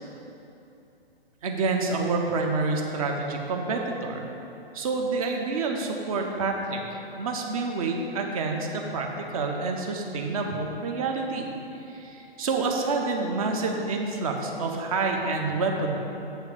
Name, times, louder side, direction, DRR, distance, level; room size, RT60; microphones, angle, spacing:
voice 1, 1.4-4.3 4.7-11.5 11.9-16.0, right 3 dB, 35° right, 2 dB, 0.9 m, -28 dB
7.3 x 4.7 x 6.8 m, 2.9 s
figure-of-eight pair, 120°, 30 cm